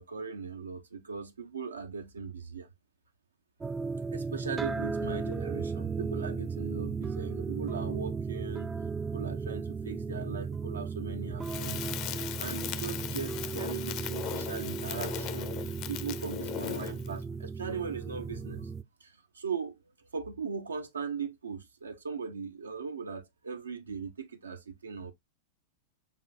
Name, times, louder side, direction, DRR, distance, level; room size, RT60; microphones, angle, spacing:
voice 1, 0.0-2.7 4.1-8.7 9.1-18.7 19.0-25.1, right 5 dB, 75° right, 0.7 m, -39 dB
sound 1, 3.6-18.8, right 5 dB, 15° right, 0.3 m, -35 dB
Crackle, 11.4-17.1, left 12 dB, 40° left, 0.5 m, -38 dB
6.7 x 2.7 x 2.3 m
figure-of-eight pair, 90°, 0 cm